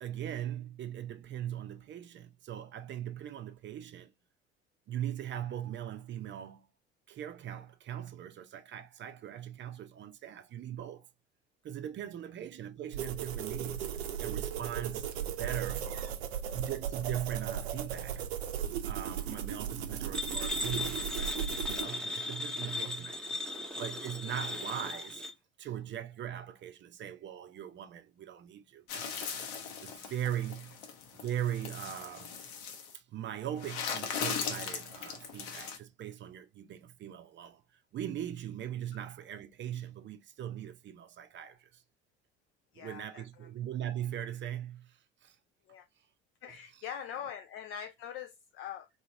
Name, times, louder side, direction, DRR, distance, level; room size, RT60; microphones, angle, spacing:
voice 1, 0.0-4.1 4.9-6.7 7.1-11.1 11.6-15.1 15.4-15.9 16.5-18.3 18.8-23.4 23.8-25.2 25.6-29.5 29.8-30.8 31.2-32.4 32.9-37.6 37.9-41.8 42.8-45.4, right 10 dB, 35° right, 0.6 m, -40 dB
sound 1, 12.9-21.9, right 9 dB, 70° right, 0.7 m, -36 dB
sound 2, 20.1-25.3, left 2 dB, ahead, 0.8 m, -37 dB
sound 3, 28.9-32.9 33.6-35.8, left 6 dB, 60° left, 0.9 m, -39 dB
voice 2, 42.7-43.5 45.7-45.9 46.4-48.9, left 8 dB, 40° left, 0.4 m, -43 dB
3.1 x 2.9 x 2.6 m
figure-of-eight pair, 65°, 33 cm